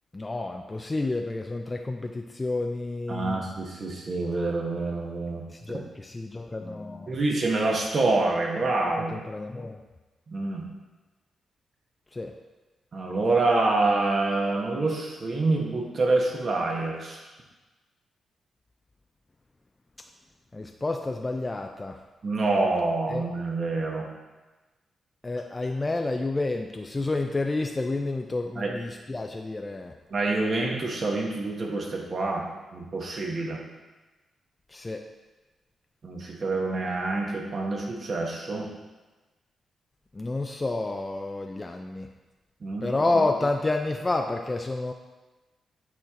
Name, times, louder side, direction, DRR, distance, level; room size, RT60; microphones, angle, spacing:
voice 1, 0.1-3.4 5.5-7.1 9.1-9.8 12.1-12.3 20.5-22.0 23.1-23.3 25.2-29.9 34.7-35.0 40.1-42.1 42.8-44.9, left 2 dB, 25° left, 3 dB, 0.4 m, -29 dB
voice 2, 3.1-5.8 7.1-9.2 10.3-10.7 12.9-17.2 22.2-24.1 28.5-28.7 30.1-33.6 36.0-38.7 42.6-43.0, right 2 dB, 50° right, 0 dB, 1.4 m, -27 dB
7.9 x 4.4 x 3.7 m, 1.2 s
cardioid pair, 85°, 0 cm